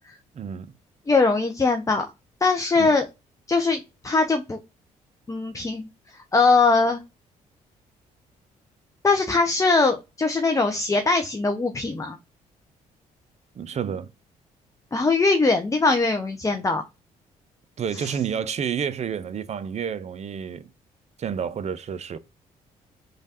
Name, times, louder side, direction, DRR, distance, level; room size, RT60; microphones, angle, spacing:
voice 1, 0.3-0.7 2.8-2.9 13.6-14.1 17.8-20.7 21.2-22.2, right 7 dB, 40° right, 0.4 m, -30 dB
voice 2, 1.1-2.1 2.4-3.0 3.5-4.6 5.3-5.9 6.3-7.0 9.0-12.2 14.9-16.8, left 3 dB, 20° left, 0.5 m, -21 dB
3.1 x 2.3 x 2.7 m
hypercardioid pair, 50°, 17 cm